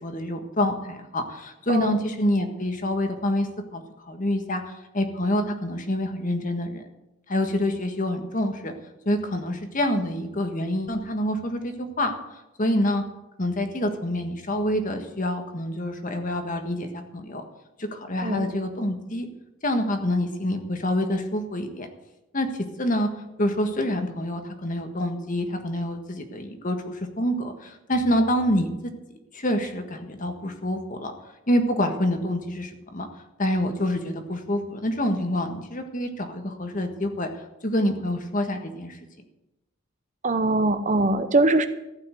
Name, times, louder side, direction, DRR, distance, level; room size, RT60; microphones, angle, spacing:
voice 1, 0.0-6.9 7.3-8.7 9.1-12.1 12.6-13.0 13.4-17.4 17.8-19.3 19.6-21.9 22.3-22.5 22.8-23.1 23.4-28.9 29.3-31.1 31.5-33.1 33.4-37.3 37.6-39.0, left 1 dB, 40° left, 6 dB, 1.6 m, -26 dB
voice 2, 40.2-41.7, right 2 dB, 35° right, 10 dB, 0.8 m, -22 dB
15.0 x 5.8 x 9.3 m, 0.94 s
head